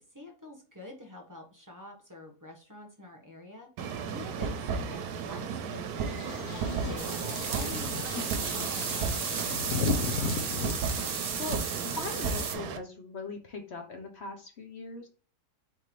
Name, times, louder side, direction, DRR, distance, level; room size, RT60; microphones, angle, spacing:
voice 1, 0.0-6.3 6.8-7.1 7.4-10.0, left 1 dB, 15° right, 1 dB, 0.8 m, -48 dB
sound 1, 3.8-12.8, right 5 dB, 70° right, 1.1 m, -34 dB
sound 2, 6.1-10.7, left 5 dB, 70° left, 1.3 m, -35 dB
voice 2, 6.7-7.1 10.8-15.1, left 3 dB, 50° left, 3 dB, 1.0 m, -41 dB
sound 3, 7.0-12.5, right 6 dB, 50° right, 0.6 m, -35 dB
4.4 x 3.6 x 3.1 m, 0.38 s
omnidirectional pair, 1.7 m